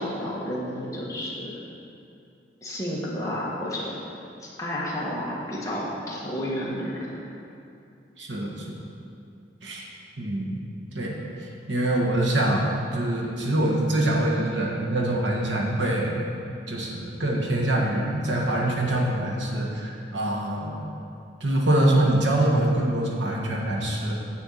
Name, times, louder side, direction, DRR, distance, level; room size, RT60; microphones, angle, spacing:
voice 1, 0.0-1.5 2.6-4.0 4.6-7.2, equal, 20° left, -6 dB, 1.6 m, -31 dB
voice 2, 8.2-8.8 9.6-9.9 10.2-10.6 10.9-16.1 16.7-20.9 21.4-24.1, right 1 dB, 90° right, -2 dB, 1.5 m, -24 dB
9.6 x 4.6 x 7.5 m, 2.6 s
head